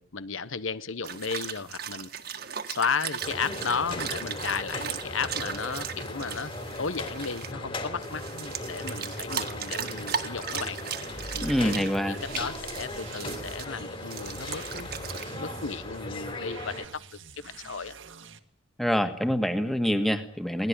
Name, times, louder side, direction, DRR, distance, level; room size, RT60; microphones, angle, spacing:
voice 1, 0.1-2.1 2.7-6.5 6.8-10.8 11.3-14.9 15.4-17.0 17.4-18.0, left 5 dB, 75° left, 15 dB, 1.0 m, -34 dB
sound 1, 1.0-7.5 8.0-13.7 14.1-15.2, right 8 dB, 50° right, 1.7 m, -37 dB
sound 2, 3.2-16.9, left 2 dB, 25° left, 3.2 m, -38 dB
sound 3, 11.0-18.4, right 3 dB, 70° right, 1.8 m, -46 dB
voice 2, 11.4-12.2 18.8-20.7, equal, ahead, 8 dB, 1.8 m, -26 dB
22.5 x 18.0 x 10.0 m, 0.67 s
head